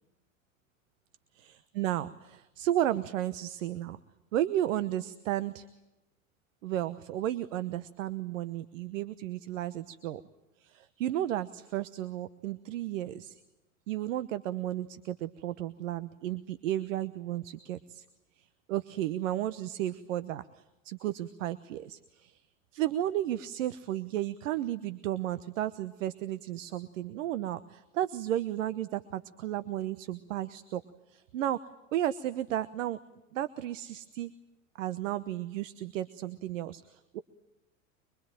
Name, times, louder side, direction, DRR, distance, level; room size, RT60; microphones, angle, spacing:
voice 1, 1.5-4.0 4.3-5.7 6.6-10.2 10.6-13.4 13.9-18.1 18.4-22.4 22.7-30.8 31.1-31.6 31.9-33.0 33.3-34.3 34.8-37.2, right 12 dB, 65° right, 15 dB, 1.1 m, -33 dB
24.0 x 23.5 x 9.2 m, 0.99 s
hypercardioid pair, 85°, 41 cm